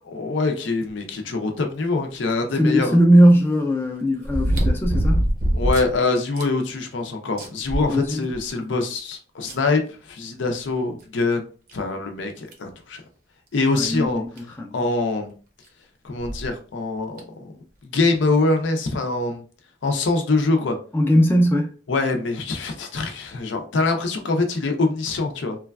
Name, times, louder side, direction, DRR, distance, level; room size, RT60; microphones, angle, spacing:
voice 1, 0.1-3.0 5.5-11.5 11.7-13.0 13.5-14.2 14.7-15.3 16.0-17.5 17.8-19.4 19.8-20.8 21.9-25.6, left 3 dB, 80° left, 0.6 m, -24 dB
sound 1, 2.3-2.4 4.2-5.9 6.4-6.5 6.9-7.0 7.4-8.5 9.5-9.6 11.0-11.1 11.7-11.8 12.5-12.7 14.1-14.2 14.4-14.5 16.2-16.5 17.2-17.3, equal, 50° right, 0.6 m, -23 dB
voice 2, 2.5-5.3 7.9-8.3 13.7-14.7 20.9-21.7, equal, 10° left, 0.3 m, -19 dB
3.1 x 2.3 x 2.2 m
head